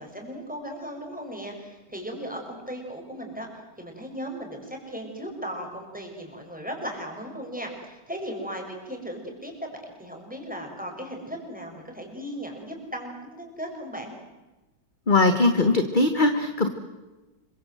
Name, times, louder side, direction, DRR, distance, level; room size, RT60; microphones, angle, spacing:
voice 1, 0.0-14.1, equal, 5° right, 2 dB, 5.9 m, -37 dB
voice 2, 15.1-16.7, left 2 dB, 30° left, 8 dB, 1.4 m, -20 dB
27.5 x 24.0 x 7.9 m, 1.2 s
omnidirectional pair, 1.9 m